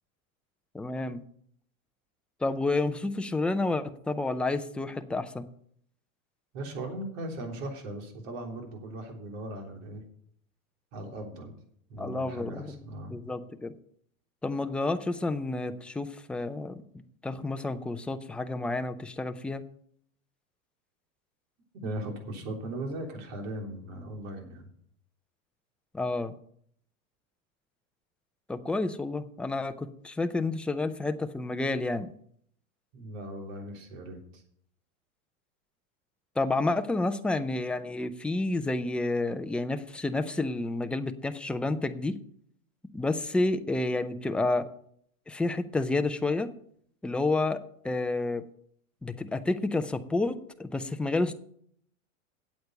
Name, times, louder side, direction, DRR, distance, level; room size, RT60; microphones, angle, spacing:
voice 1, 0.7-1.2 2.4-5.5 12.0-13.7 14.4-16.8 17.2-19.6 25.9-26.3 28.5-32.1 36.4-42.2 42.9-44.7 45.3-46.5 47.0-48.4 49.0-51.3, left 2 dB, 5° left, 8 dB, 0.4 m, -30 dB
voice 2, 6.5-10.0 10.9-11.5 11.9-13.2 21.8-24.7 32.9-34.4, right 1 dB, 65° right, 2 dB, 3.6 m, -38 dB
8.6 x 8.4 x 6.6 m, 0.65 s
hypercardioid pair, 115°, 42 cm